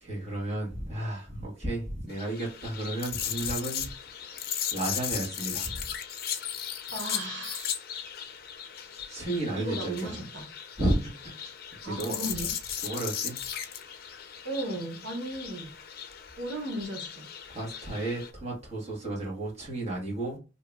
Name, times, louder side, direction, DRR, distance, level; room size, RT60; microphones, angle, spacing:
voice 1, 0.0-3.9 4.2-5.9 9.1-10.2 10.8-11.6 11.8-12.2 12.8-13.4 17.5-20.4, right 1 dB, 35° right, -3 dB, 1.5 m, -33 dB
sound 1, 2.1-18.3, left 9 dB, 55° left, 0.5 m, -37 dB
voice 2, 6.9-7.7 9.6-10.5 11.8-12.5 14.4-15.7 16.4-17.3, right 1 dB, 85° right, 0 dB, 1.0 m, -35 dB
2.8 x 2.8 x 3.4 m, 0.30 s
head